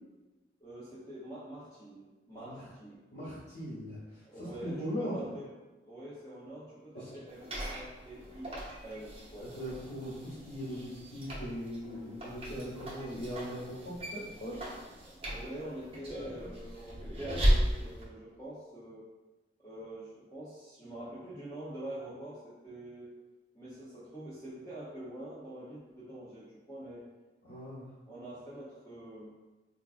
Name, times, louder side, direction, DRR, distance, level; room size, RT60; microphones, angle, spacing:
voice 1, 0.6-3.0 4.2-5.5 5.8-8.5 8.8-9.5 15.0-19.1 19.6-23.1 23.5-27.0 28.1-29.3, right 1 dB, 20° left, -11 dB, 0.6 m, -45 dB
voice 2, 3.1-5.1 6.9-7.1 9.4-14.7 27.4-27.9, equal, 75° left, -11 dB, 1.0 m, -40 dB
sound 1, 7.3-18.0, equal, 30° right, 0.7 m, -36 dB
4.4 x 2.4 x 2.3 m, 1.2 s
head